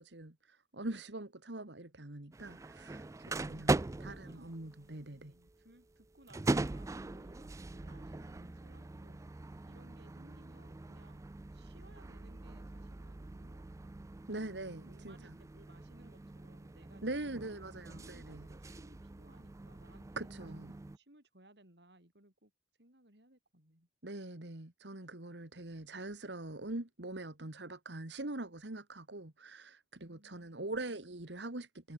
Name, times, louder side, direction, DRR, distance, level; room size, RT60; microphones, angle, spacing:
voice 1, 0.0-5.3 14.3-15.3 17.0-18.5 20.2-20.7 24.0-31.9, right 2 dB, 85° right, 2.2 m, -43 dB
sound 1, 2.3-21.0, right 2 dB, 20° right, 0.4 m, -41 dB
voice 2, 3.8-9.2 9.7-11.3 11.5-14.2 14.6-17.5 17.9-22.5 22.8-23.9 30.0-30.7, right 1 dB, 70° right, 8.0 m, -63 dB
head